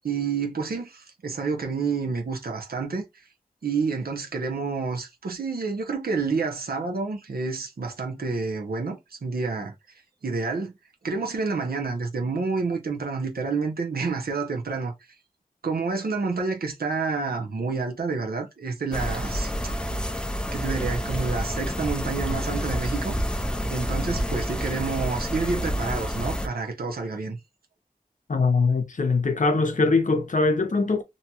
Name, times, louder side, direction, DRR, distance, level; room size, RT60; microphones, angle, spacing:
voice 1, 0.0-3.0 3.6-9.7 10.2-10.7 11.0-14.9 15.6-19.7 20.5-23.1 23.7-27.4, right 4 dB, 80° right, 0.7 m, -29 dB
sound 1, 18.9-26.5, equal, 5° left, 0.5 m, -28 dB
voice 2, 28.3-31.0, left 3 dB, 55° left, 0.7 m, -22 dB
2.7 x 2.3 x 2.8 m
wide cardioid pair, 55°, 15 cm